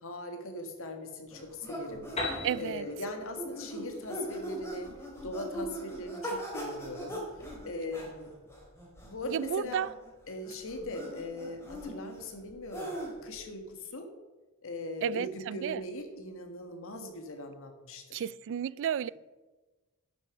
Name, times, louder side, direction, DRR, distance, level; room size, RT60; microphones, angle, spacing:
voice 1, 0.0-4.9 5.2-7.2 7.6-8.3 9.1-9.8 10.3-12.9 13.2-14.1 14.6-18.3, left 2 dB, 65° left, 1.7 m, -40 dB
sound 1, 1.3-13.3, equal, 10° left, 2.7 m, -41 dB
Piano, 2.2-5.8, left 2 dB, 30° left, 3.2 m, -40 dB
voice 2, 2.4-2.9 9.3-9.9 15.0-15.8 18.1-19.1, right 9 dB, 60° right, 0.3 m, -32 dB
11.5 x 7.0 x 5.9 m
head